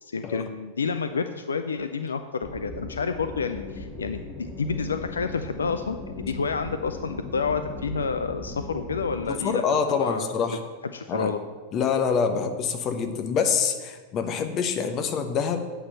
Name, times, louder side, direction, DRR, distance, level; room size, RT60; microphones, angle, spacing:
voice 1, 0.0-10.3 10.9-11.4, left 5 dB, 70° left, 9 dB, 0.4 m, -29 dB
sound 1, 2.4-9.4, left 2 dB, 10° right, 2.4 m, -38 dB
voice 2, 9.3-10.6 11.1-11.3 11.7-15.7, left 6 dB, 35° left, 7 dB, 1.0 m, -26 dB
8.5 x 5.7 x 7.5 m, 1.4 s
figure-of-eight pair, 90°, 0 cm